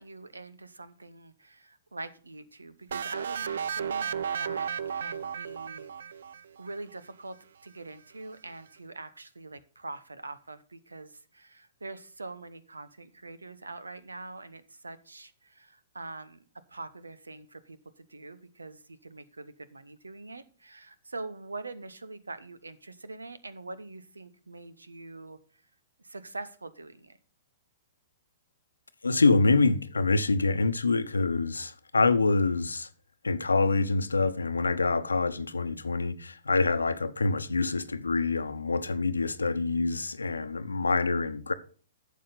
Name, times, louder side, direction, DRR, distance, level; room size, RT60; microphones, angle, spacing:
voice 1, 0.0-5.9 6.6-7.4 7.6-16.4 16.7-25.4 26.0-27.2, right 3 dB, 90° right, 1.0 m, -44 dB
sound 1, 2.9-6.7, right 7 dB, 70° right, 0.4 m, -33 dB
voice 2, 29.0-32.9 33.2-41.5, left 3 dB, 85° left, 0.9 m, -26 dB
11.5 x 7.3 x 4.0 m
hypercardioid pair, 115°, 0 cm